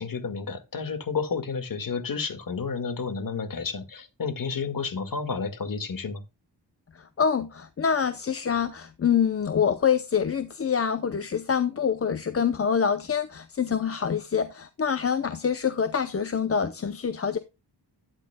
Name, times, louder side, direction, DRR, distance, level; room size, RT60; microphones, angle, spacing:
voice 1, 0.0-6.2, left 5 dB, 55° left, 1.9 m, -31 dB
voice 2, 6.9-17.4, left 7 dB, 35° left, 0.7 m, -26 dB
12.5 x 10.0 x 2.2 m
wide cardioid pair, 160°, 41 cm